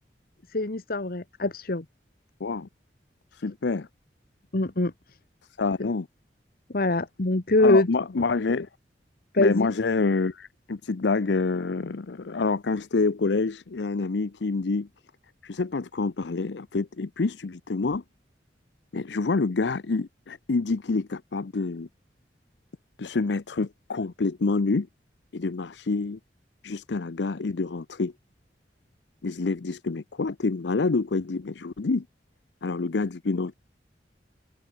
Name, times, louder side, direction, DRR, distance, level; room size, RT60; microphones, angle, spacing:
voice 1, 0.5-1.8 4.5-4.9 5.8-5.9 6.7-7.9 9.3-9.7, left 2 dB, 55° left, 1.4 m, -23 dB
voice 2, 3.3-3.9 5.6-6.1 7.6-8.7 9.4-14.9 15.4-18.0 18.9-21.9 23.0-24.9 25.3-26.2 26.6-28.1 29.2-32.0 32.6-33.5, left 3 dB, 75° left, 0.6 m, -27 dB
open air
head